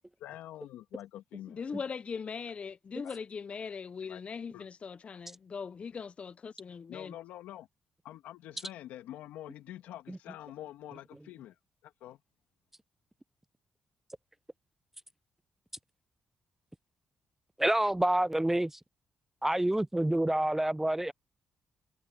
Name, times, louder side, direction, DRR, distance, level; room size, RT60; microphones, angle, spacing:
voice 1, 0.0-1.7 3.0-3.2 4.1-4.2 4.5-4.7 6.9-7.7 8.0-11.6 11.8-12.2, left 13 dB, 85° left, 2.6 m, -46 dB
voice 2, 1.5-7.1, left 6 dB, 50° left, 0.6 m, -40 dB
voice 3, 17.6-18.7 19.4-21.1, right 1 dB, 10° right, 0.3 m, -27 dB
supercardioid pair, 55°, 3 cm